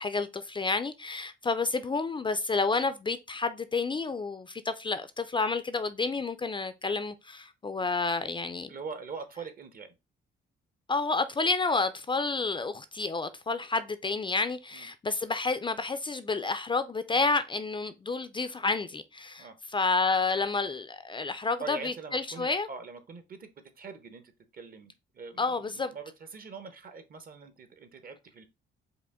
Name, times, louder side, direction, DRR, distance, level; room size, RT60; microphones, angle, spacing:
voice 1, 0.0-8.7 10.9-22.7 25.4-25.9, left 3 dB, 25° left, 0.4 m, -30 dB
voice 2, 8.7-9.9 14.7-14.9 19.4-19.6 21.6-23.5 23.8-24.2 24.5-28.5, right 5 dB, 45° right, 0.9 m, -43 dB
5.0 x 2.5 x 3.6 m
cardioid pair, 90°, 20 cm